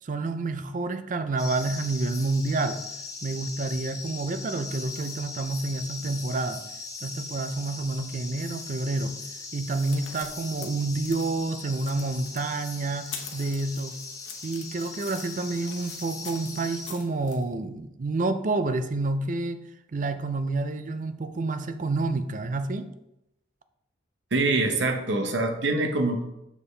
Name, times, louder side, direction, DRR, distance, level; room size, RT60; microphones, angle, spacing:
voice 1, 0.0-2.8 3.2-6.6 7.0-9.1 9.5-13.9 14.4-19.6 19.9-22.9, right 3 dB, 45° right, 11 dB, 0.4 m, -29 dB
sound 1, 1.4-16.9, left 4 dB, 20° left, 0.6 m, -40 dB
sound 2, 9.4-17.4, left 7 dB, 85° left, 1.0 m, -45 dB
voice 2, 24.3-26.2, right 2 dB, 75° right, 5 dB, 0.8 m, -24 dB
7.1 x 4.4 x 3.3 m, 0.88 s
head